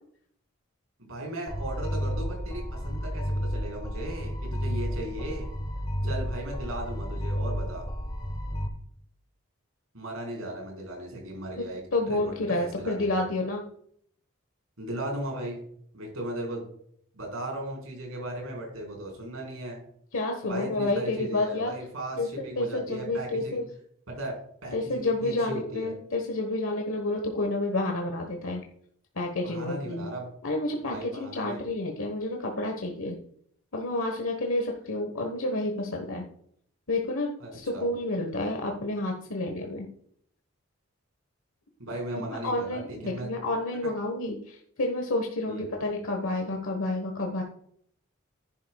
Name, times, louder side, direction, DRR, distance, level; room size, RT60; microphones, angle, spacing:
voice 1, 1.0-5.5 6.0-7.8 8.5-8.6 9.9-13.2 14.8-15.6 15.9-16.6 17.1-19.8 20.4-23.6 24.1-25.9 29.4-30.3 30.8-31.6 37.4-37.9 41.8-43.3 43.8-43.9 45.5-45.7, right 1 dB, 85° right, 0 dB, 4.4 m, -37 dB
sound 1, 1.5-8.7, equal, 20° left, 1.0 m, -32 dB
voice 2, 11.9-13.6 20.1-21.7 22.2-22.3 22.6-23.7 24.7-28.6 29.1-30.1 30.4-33.2 33.7-36.2 36.9-39.9 42.4-47.4, left 2 dB, 80° left, 2 dB, 1.2 m, -29 dB
10.5 x 10.5 x 2.3 m, 0.65 s
head